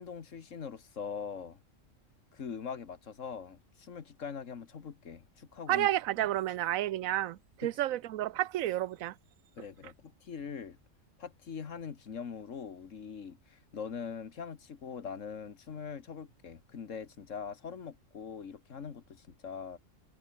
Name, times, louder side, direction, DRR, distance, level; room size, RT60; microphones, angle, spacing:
voice 1, 0.0-1.6 2.3-5.9 7.6-7.7 9.6-10.8 11.2-19.8, left 6 dB, 70° left, 1.8 m, -42 dB
voice 2, 5.7-9.1, right 13 dB, 90° right, 1.1 m, -31 dB
omnidirectional pair, 1.4 m